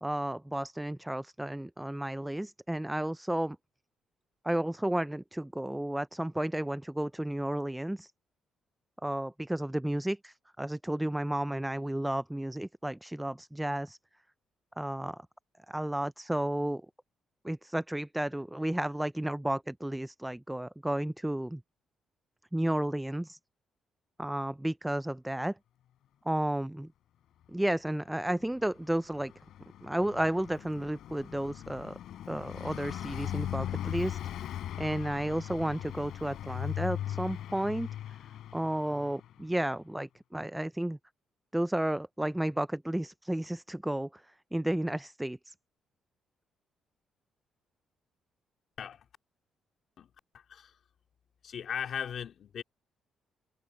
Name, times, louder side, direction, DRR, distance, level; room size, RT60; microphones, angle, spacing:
voice 1, 0.0-3.6 4.4-8.1 9.0-14.0 14.8-15.2 15.7-16.8 17.4-21.6 22.5-23.4 24.2-25.5 26.3-26.9 27.5-29.3 29.8-32.0 32.3-34.5 34.8-37.9 38.5-41.0 41.5-44.2 44.5-45.5, right 1 dB, 5° right, 0.3 m, -32 dB
Car passing by, 28.4-39.5, left 11 dB, 75° left, 4.4 m, -39 dB
voice 2, 50.0-50.8 51.4-52.6, left 8 dB, 60° left, 2.2 m, -38 dB
cardioid pair, 90°, 0 cm